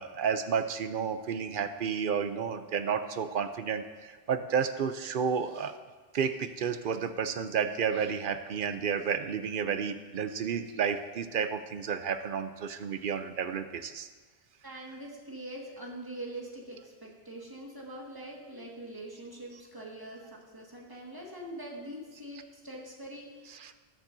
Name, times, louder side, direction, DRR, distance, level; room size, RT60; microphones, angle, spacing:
voice 1, 0.0-5.8 6.1-14.1 23.6-23.7, right 7 dB, 60° right, 10 dB, 0.7 m, -31 dB
voice 2, 14.6-23.5, right 1 dB, 20° right, -3 dB, 1.8 m, -43 dB
19.5 x 7.2 x 2.7 m, 1.4 s
omnidirectional pair, 1.1 m